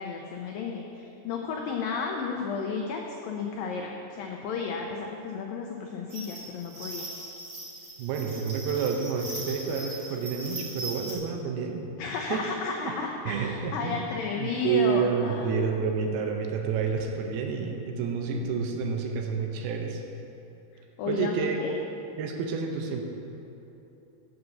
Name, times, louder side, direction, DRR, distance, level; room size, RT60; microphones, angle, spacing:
voice 1, 0.0-7.1 12.0-15.6 21.0-21.8, left 5 dB, 90° left, 2 dB, 2.0 m, -33 dB
sound 1, 6.1-11.1, right 2 dB, 35° right, 1.8 m, -39 dB
voice 2, 8.0-11.9 12.2-12.4 12.8-12.9 13.3-14.0 14.4-20.0 21.1-21.6 22.2-23.0, right 6 dB, 75° right, 3 dB, 2.5 m, -29 dB
7.9 x 7.9 x 6.9 m, 2.9 s
omnidirectional pair, 4.9 m